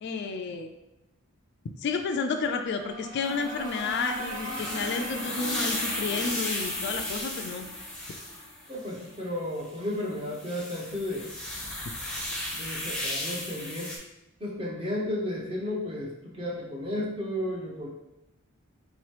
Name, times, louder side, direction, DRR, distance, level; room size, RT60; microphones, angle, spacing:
voice 1, 0.0-0.7 1.8-7.6, left 5 dB, 50° left, 6 dB, 0.3 m, -31 dB
sound 1, 2.4-9.2, right 1 dB, 70° right, 1.2 m, -40 dB
sound 2, 3.2-9.1 9.7-9.8 10.2-14.0, left 1 dB, 5° left, 0.7 m, -35 dB
voice 2, 8.7-11.3 12.5-13.9 14.4-17.9, left 1 dB, 25° right, -3 dB, 0.9 m, -33 dB
4.3 x 3.0 x 3.2 m, 0.92 s
head